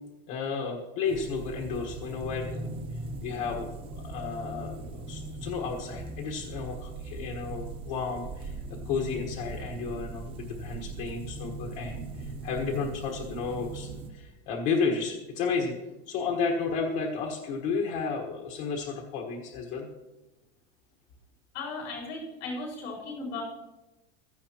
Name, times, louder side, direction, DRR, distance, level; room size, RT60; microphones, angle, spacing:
voice 1, 0.3-15.7 16.1-19.9, left 5 dB, 45° left, 1 dB, 1.4 m, -32 dB
sound 1, 1.1-14.1, right 2 dB, 15° right, 0.9 m, -39 dB
voice 2, 21.5-23.4, left 3 dB, 85° left, -4 dB, 5.2 m, -36 dB
16.0 x 14.0 x 2.9 m, 1.0 s
supercardioid pair, 175°, 31 cm